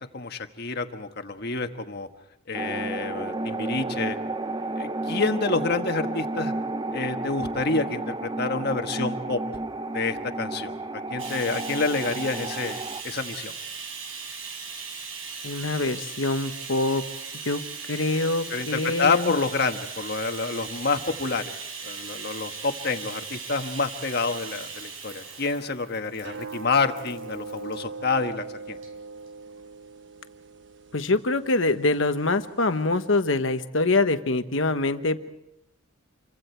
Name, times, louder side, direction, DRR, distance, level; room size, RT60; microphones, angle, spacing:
voice 1, 0.1-2.1 2.5-4.2 4.8-6.5 6.9-9.4 9.9-13.5 18.5-21.4 21.8-28.8, left 4 dB, 50° left, 7 dB, 1.4 m, -28 dB
sound 1, 2.5-13.0, right 2 dB, 20° right, 0.7 m, -32 dB
Bathtub (filling or washing), 11.2-27.8 28.7-28.9 29.3-29.4, right 5 dB, 85° right, 4.3 m, -38 dB
voice 2, 15.4-17.0 17.4-17.6 17.9-19.3 30.9-35.3, left 2 dB, 70° left, 9 dB, 1.2 m, -24 dB
sound 2, 26.2-33.1, right 4 dB, 60° right, 1.2 m, -41 dB
27.5 x 24.0 x 4.6 m, 0.85 s
head